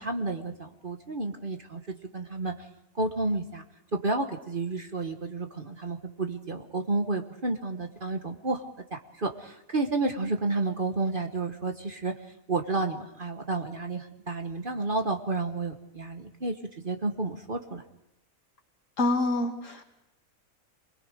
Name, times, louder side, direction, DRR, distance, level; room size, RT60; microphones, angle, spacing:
voice 1, 0.0-1.8 2.1-2.5 2.9-3.6 3.9-12.1 12.5-17.8, right 3 dB, 40° right, 4 dB, 1.4 m, -31 dB
voice 2, 19.0-19.9, left 2 dB, 60° left, 3 dB, 2.6 m, -26 dB
28.0 x 21.5 x 5.0 m, 0.83 s
omnidirectional pair, 1.5 m